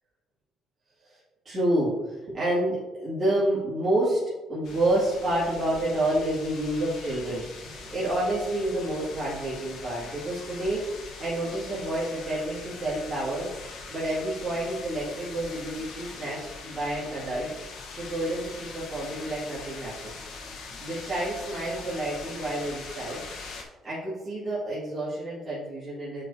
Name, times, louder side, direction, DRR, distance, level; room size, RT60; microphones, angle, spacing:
voice 1, 1.0-4.2 4.5-17.5 18.0-20.1 20.8-23.2 23.8-26.2, right 1 dB, 30° right, -11 dB, 2.2 m, -29 dB
sound 1, 4.6-23.6, left 4 dB, 65° left, 1.2 m, -42 dB
9.7 x 5.0 x 2.8 m, 1.1 s
cardioid pair, 165°, 0 cm